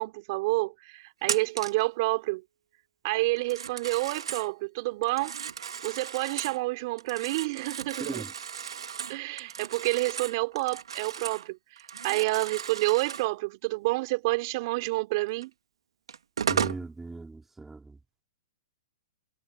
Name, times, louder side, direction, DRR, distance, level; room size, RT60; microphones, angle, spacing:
voice 1, 0.0-2.4 3.0-5.3 5.8-8.2 9.1-11.6 12.0-15.5, right 23 dB, 50° right, 3.9 m, -29 dB
Telephone, 1.2-1.9 3.4-4.5 5.0-6.6 7.0-11.5 11.8-13.3 15.4-15.5 16.1-16.8, right 7 dB, 80° right, 2.3 m, -35 dB
voice 2, 16.5-17.8, right 3 dB, 10° right, 3.8 m, -38 dB
hypercardioid pair, 125°, 3 cm